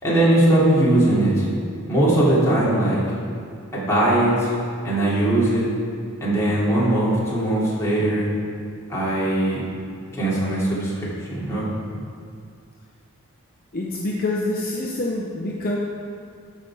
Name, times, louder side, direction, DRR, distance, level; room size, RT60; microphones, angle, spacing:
voice 1, 0.0-1.4 1.9-3.0 3.7-4.5 4.8-5.7 6.2-8.3 8.9-9.6 10.2-11.7, right 1 dB, 15° left, -8 dB, 2.8 m, -20 dB
voice 2, 13.7-15.8, left 2 dB, 45° left, -3 dB, 0.8 m, -26 dB
13.5 x 5.5 x 4.9 m, 2.3 s
head